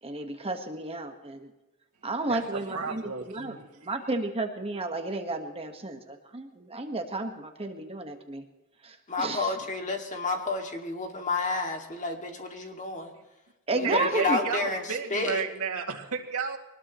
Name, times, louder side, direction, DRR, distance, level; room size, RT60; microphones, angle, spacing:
voice 1, 0.0-1.5 2.0-8.4 8.8-9.6 13.7-14.5, right 2 dB, 25° right, 5 dB, 1.5 m, -32 dB
voice 2, 2.3-3.6 13.8-16.6, right 5 dB, 85° right, -1 dB, 2.3 m, -33 dB
voice 3, 9.1-13.1 13.7-14.8 15.1-15.4, left 3 dB, 35° left, 3 dB, 2.3 m, -30 dB
23.5 x 19.5 x 3.1 m, 1.1 s
head